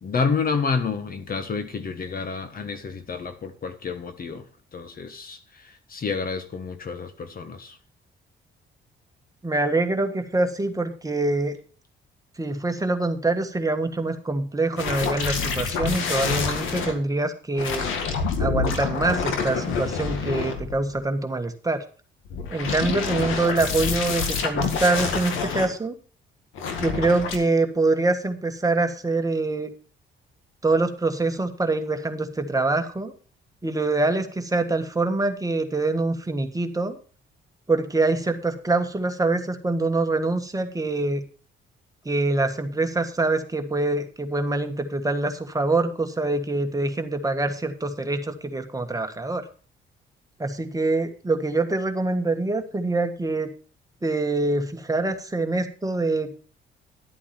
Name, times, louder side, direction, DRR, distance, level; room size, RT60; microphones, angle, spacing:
voice 1, 0.0-4.4 4.7-5.4 5.9-7.7, left 5 dB, 45° left, 1.5 m, -29 dB
voice 2, 9.4-11.6 12.4-17.9 18.4-21.8 22.5-25.9 26.8-29.7 30.6-33.1 33.6-37.0 37.7-41.2 42.0-49.4 50.4-53.5 54.0-56.4, right 2 dB, 15° right, 1.5 m, -25 dB
sound 1, 14.8-16.9 17.6-21.0 22.3-25.7 26.6-27.4, left 5 dB, 90° left, 1.9 m, -27 dB
12.0 x 8.6 x 4.3 m
cardioid pair, 90°, 20 cm